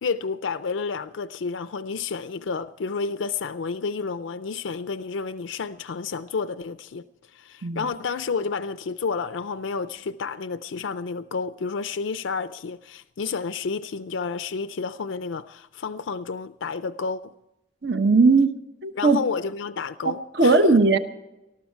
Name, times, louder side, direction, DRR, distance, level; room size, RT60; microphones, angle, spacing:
voice 1, 0.0-7.0 7.3-17.3 18.9-20.6, left 5 dB, 85° left, 0.5 m, -30 dB
voice 2, 17.8-18.5 18.8-19.2 20.0-21.0, right 3 dB, 60° right, 1.0 m, -18 dB
19.5 x 14.0 x 4.6 m
head